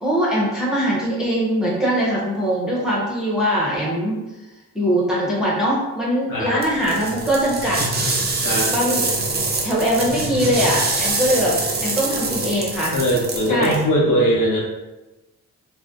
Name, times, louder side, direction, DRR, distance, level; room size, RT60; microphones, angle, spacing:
voice 1, 0.0-4.2 4.7-7.8 8.7-9.1 9.6-11.5 11.8-12.9 13.5-13.7, equal, ahead, -7 dB, 0.7 m, -21 dB
sound 1, 6.6-13.8, right 3 dB, 30° right, 0.5 m, -24 dB
voice 2, 12.9-14.6, equal, 75° left, -4 dB, 0.8 m, -20 dB
2.6 x 2.1 x 3.5 m, 1.1 s
cardioid pair, 115°, 32 cm